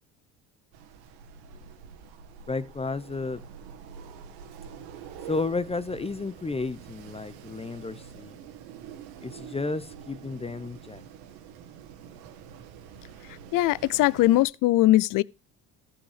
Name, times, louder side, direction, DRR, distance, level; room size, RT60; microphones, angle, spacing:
Wind, 0.7-14.4, right 7 dB, 80° right, 1.6 m, -46 dB
voice 1, 2.5-3.4 5.3-8.3 9.2-11.0, left 3 dB, 15° left, 0.7 m, -32 dB
voice 2, 13.5-15.2, left 16 dB, 55° left, 0.5 m, -21 dB
14.0 x 5.7 x 4.9 m
supercardioid pair, 80°, 38 cm